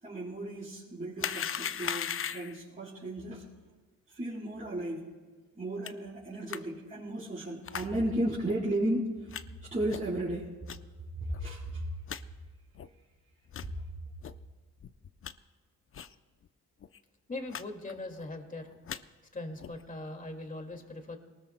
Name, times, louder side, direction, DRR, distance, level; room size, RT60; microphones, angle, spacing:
voice 1, 0.0-3.5 4.1-5.1 5.6-9.4 9.7-10.5 11.2-11.8, right 1 dB, 25° right, -9 dB, 4.4 m, -34 dB
sound 1, 1.2-2.6 5.8-5.9 6.5-6.6 7.6-7.9 8.4-8.6 9.3-9.4 9.9-10.1 10.7-10.8 11.3-11.4 11.7-11.8 12.1-12.2 12.7-12.9 13.5-13.7 14.2-14.3 14.8-15.3 15.9-16.1 16.4-16.5 16.8-17.0 17.5-17.6 17.9-18.3 18.7-19.0 19.6-19.8, left 8 dB, 40° left, 0.6 m, -37 dB
voice 2, 17.3-18.7 19.3-21.2, left 2 dB, 25° left, 4 dB, 2.2 m, -40 dB
23.0 x 19.5 x 2.2 m, 1.4 s
cardioid pair, 90°, 33 cm